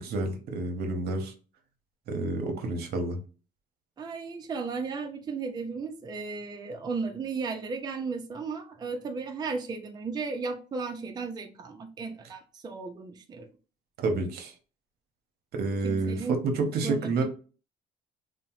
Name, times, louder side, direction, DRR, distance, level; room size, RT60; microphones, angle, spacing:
voice 1, 0.0-1.3 2.1-3.2 14.0-14.5 15.5-17.2, right 3 dB, 70° right, 5 dB, 0.7 m, -29 dB
voice 2, 4.0-13.5 15.8-16.4 16.8-17.2, right 4 dB, 25° right, 4 dB, 0.4 m, -35 dB
2.8 x 2.0 x 2.9 m, 0.36 s
cardioid pair, 110°, 17 cm